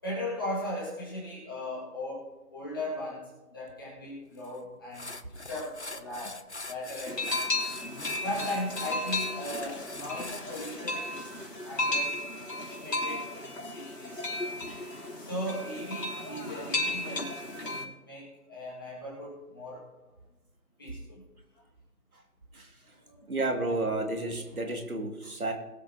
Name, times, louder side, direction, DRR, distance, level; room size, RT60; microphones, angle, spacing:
voice 1, 0.0-7.6 8.2-11.3 11.6-14.3 15.1-17.3 17.6-19.8 20.8-21.2 23.0-23.4, left 1 dB, 15° left, -6 dB, 2.0 m, -38 dB
sound 1, 4.4-4.6 4.9-10.8, left 2 dB, 45° left, 0.6 m, -43 dB
sound 2, 7.1-17.8, left 2 dB, 85° left, 3.5 m, -34 dB
voice 2, 23.3-25.5, right 2 dB, 65° right, 3 dB, 2.3 m, -31 dB
22.0 x 8.2 x 2.9 m, 1.1 s
figure-of-eight pair, 170°, 48 cm